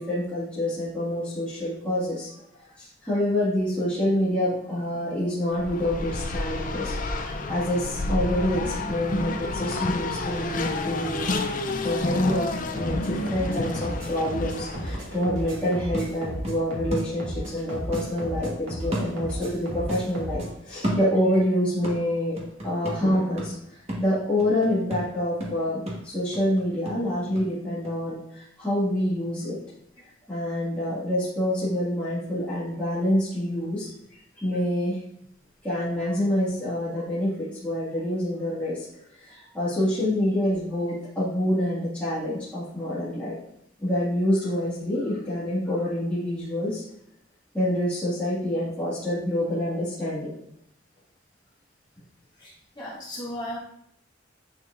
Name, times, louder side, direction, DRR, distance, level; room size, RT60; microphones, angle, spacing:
voice 1, 0.0-2.3 2.6-12.5 12.7-22.4 22.6-29.6 30.3-33.9 34.3-35.0 35.6-38.9 39.1-43.4 43.8-46.8 47.5-50.3, left 1 dB, 5° left, -12 dB, 1.9 m, -27 dB
Race car auto racing, 5.5-15.2, left 2 dB, 40° left, 0.5 m, -29 dB
sound 1, 12.8-20.5, equal, 90° right, 2.1 m, -35 dB
sound 2, 14.4-17.6 17.9-19.6 19.9-21.5 21.8-27.5 27.8-27.9, right 1 dB, 30° right, 1.3 m, -34 dB
voice 2, 52.4-53.6, left 1 dB, 25° left, -8 dB, 2.4 m, -36 dB
9.7 x 4.3 x 2.5 m, 0.74 s
head